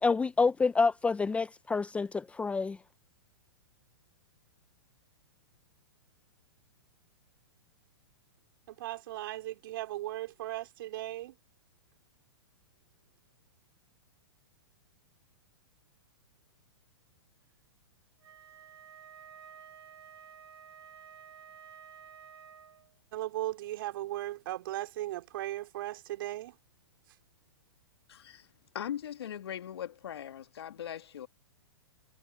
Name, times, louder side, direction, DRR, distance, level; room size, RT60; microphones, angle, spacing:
voice 1, 0.0-2.8, left 4 dB, 10° left, 0.7 m, -28 dB
voice 2, 8.7-11.3 23.1-26.5, right 15 dB, 60° right, 4.6 m, -37 dB
Wind instrument woodwind instrument, 18.2-22.9, right 8 dB, 75° right, 2.5 m, -52 dB
voice 3, 28.1-31.3, left 10 dB, 75° left, 2.0 m, -40 dB
hypercardioid pair, 125°, 13 cm